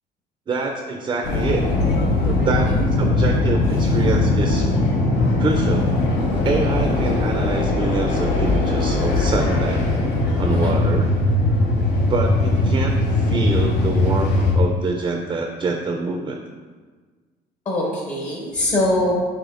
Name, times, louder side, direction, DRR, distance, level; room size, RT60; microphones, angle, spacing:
voice 1, 0.5-1.6 2.2-4.7 5.4-5.9 6.4-9.8 10.4-11.1 12.1-12.9 13.3-16.4, right 3 dB, 25° right, 3 dB, 0.4 m, -25 dB
sound 1, 1.2-14.5, left 2 dB, 85° left, 0.8 m, -20 dB
voice 2, 17.7-19.1, left 1 dB, 45° left, -2 dB, 1.0 m, -23 dB
4.9 x 4.4 x 2.5 m, 1.4 s
cardioid pair, 110°, 17 cm